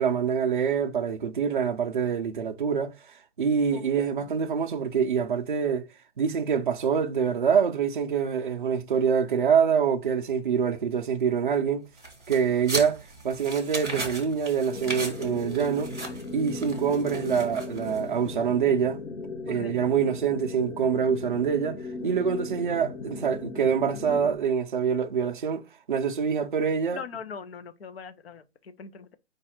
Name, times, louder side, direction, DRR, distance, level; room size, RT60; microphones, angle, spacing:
voice 1, 0.0-2.9 3.4-5.9 6.2-11.9 12.3-13.0 13.2-15.9 16.3-19.0 19.4-25.6 25.9-27.0, right 7 dB, 45° right, 0.4 m, -25 dB
sound 1, 12.0-18.2, right 2 dB, 5° left, 0.9 m, -37 dB
sound 2, 14.7-24.3, left 3 dB, 90° left, 1.0 m, -37 dB
voice 2, 26.9-29.2, left 6 dB, 55° left, 0.6 m, -41 dB
5.2 x 2.4 x 4.2 m
hypercardioid pair, 180°, 36 cm